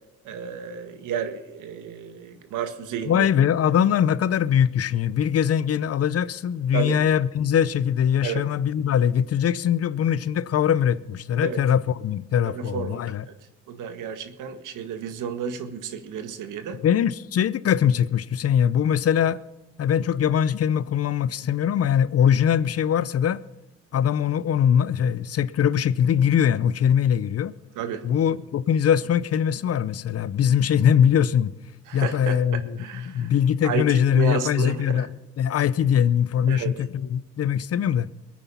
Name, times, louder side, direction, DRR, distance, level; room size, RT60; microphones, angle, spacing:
voice 1, 0.3-3.3 6.7-7.0 8.2-8.4 11.4-11.6 12.4-13.0 13.7-16.8 27.8-28.1 31.9-32.4 32.8-33.3 33.6-35.1 36.5-36.7, right 7 dB, 85° right, 1.8 m, -31 dB
voice 2, 3.1-13.2 16.8-19.4 19.8-23.4 23.9-27.5 28.0-31.5 31.9-35.1 35.4-38.1, left 9 dB, 50° left, 0.7 m, -22 dB
21.5 x 9.4 x 5.6 m
cardioid pair, 90°, 30 cm